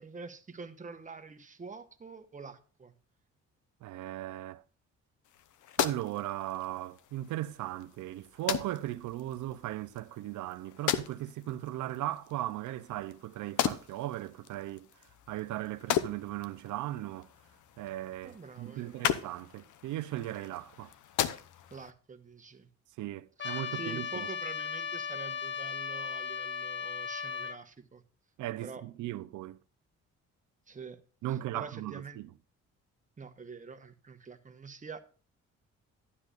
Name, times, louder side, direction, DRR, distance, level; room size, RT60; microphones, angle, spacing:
voice 1, 0.0-2.9 18.2-19.1 21.7-22.7 23.4-28.0 28.6-28.9 30.7-31.0 31.3-32.2 33.2-35.0, right 4 dB, 25° right, 1.1 m, -46 dB
voice 2, 3.8-4.6 5.8-14.9 15.3-17.3 17.8-20.9 23.0-24.3 28.4-29.6 31.2-32.3, right 14 dB, 80° right, 0.6 m, -37 dB
sound 1, 5.2-21.9, left 10 dB, 80° left, 0.9 m, -38 dB
Trumpet, 23.4-27.6, left 6 dB, 40° left, 1.0 m, -36 dB
12.0 x 9.8 x 2.5 m
cardioid pair, 90°, 30 cm